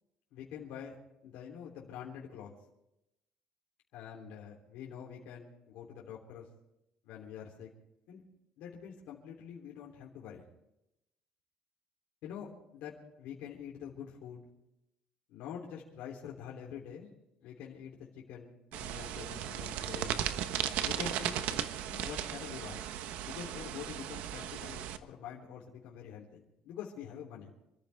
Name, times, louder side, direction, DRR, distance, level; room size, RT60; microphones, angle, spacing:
voice 1, 0.3-0.9 1.2-2.5 3.9-6.5 7.0-7.7 8.1-8.2 8.6-10.4 12.2-14.4 15.3-17.1 17.4-20.1 20.8-21.6 21.9-22.8 23.2-27.5, left 8 dB, 70° left, -3 dB, 3.3 m, -46 dB
sound 1, 18.7-25.0, right 11 dB, 70° right, 1.1 m, -36 dB
27.5 x 14.0 x 3.5 m, 0.86 s
cardioid pair, 160°, 3 cm